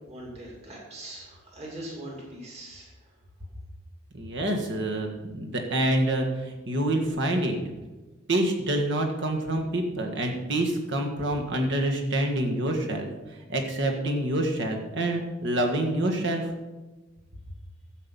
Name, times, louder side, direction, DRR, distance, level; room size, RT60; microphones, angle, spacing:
voice 1, 0.1-3.1, right 1 dB, 30° right, -2 dB, 2.6 m, -41 dB
voice 2, 4.1-7.7 8.3-16.5, right 1 dB, 60° right, 2 dB, 1.7 m, -27 dB
12.5 x 7.8 x 5.5 m, 1.2 s
head